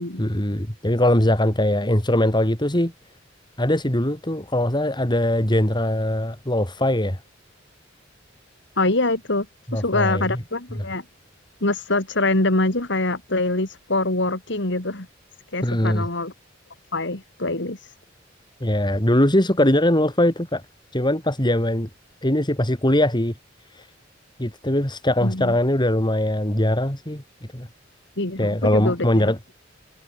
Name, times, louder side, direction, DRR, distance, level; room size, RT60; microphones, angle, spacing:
voice 1, 0.2-2.9 3.6-7.2 9.7-10.4 10.8-10.9 15.6-16.1 18.6-20.6 20.9-21.9 22.2-23.3 23.7-23.9 24.4-27.2 27.5-27.7 28.4-29.4, left 1 dB, 25° left, 4.6 m, -21 dB
voice 2, 8.8-9.5 9.7-11.0 11.6-15.1 15.5-16.3 16.9-17.9 25.2-25.5 28.2-29.3, left 2 dB, 65° left, 3.4 m, -24 dB
head